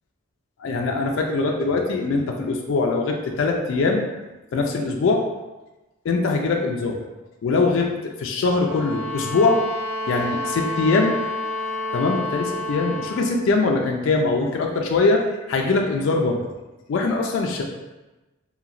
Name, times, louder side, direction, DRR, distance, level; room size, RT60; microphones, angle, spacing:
voice 1, 0.6-4.0 4.5-5.2 6.0-7.0 7.4-7.9 8.2-9.6 10.1-11.2 11.9-16.4 16.9-17.6, left 3 dB, 70° left, 1 dB, 0.3 m, -22 dB
sound 1, 8.5-13.3, left 2 dB, 35° left, 0.6 m, -29 dB
2.9 x 2.8 x 2.4 m, 1.1 s
head